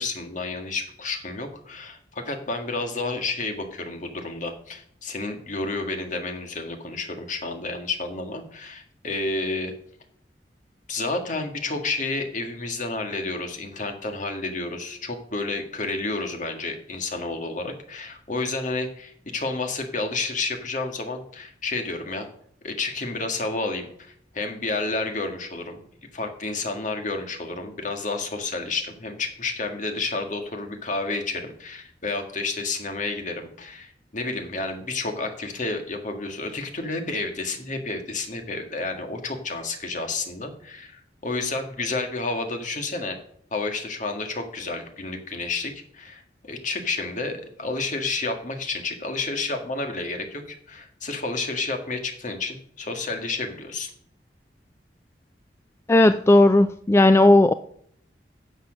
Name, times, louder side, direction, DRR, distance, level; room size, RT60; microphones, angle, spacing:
voice 1, 0.0-9.7 10.9-22.3 22.6-25.8 26.1-43.2 43.5-53.9, left 3 dB, 45° left, 5 dB, 1.8 m, -30 dB
voice 2, 55.9-57.5, left 2 dB, 15° left, 11 dB, 0.3 m, -15 dB
10.0 x 7.2 x 6.5 m, 0.65 s
head